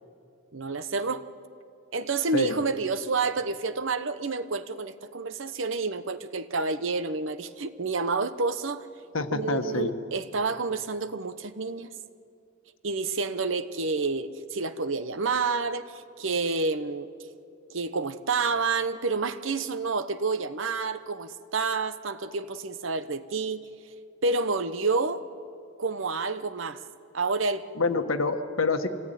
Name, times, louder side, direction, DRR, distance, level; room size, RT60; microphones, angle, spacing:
voice 1, 0.5-1.2 1.9-8.9 9.3-11.9 12.8-17.1 17.7-23.6 24.2-25.3 25.8-26.8 27.1-27.7, right 4 dB, 70° right, 12 dB, 0.9 m, -29 dB
voice 2, 9.1-9.9 27.8-28.9, left 3 dB, 80° left, 7 dB, 1.5 m, -26 dB
26.5 x 18.0 x 9.2 m, 2.6 s
head